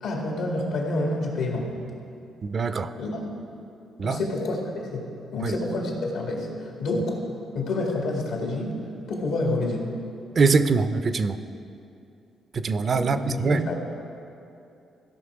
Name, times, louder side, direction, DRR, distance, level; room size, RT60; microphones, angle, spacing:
voice 1, 0.0-1.7 3.0-3.2 4.0-4.6 4.9-5.1 5.3-7.2 7.5-8.8 9.1-9.9 12.9-13.8, left 2 dB, 85° left, 0 dB, 2.1 m, -28 dB
voice 2, 2.4-2.9 4.0-4.2 5.4-5.6 10.4-11.4 12.5-13.6, right 4 dB, 45° right, 11 dB, 0.5 m, -23 dB
16.0 x 5.7 x 4.8 m, 2.7 s
cardioid pair, 90°, 0 cm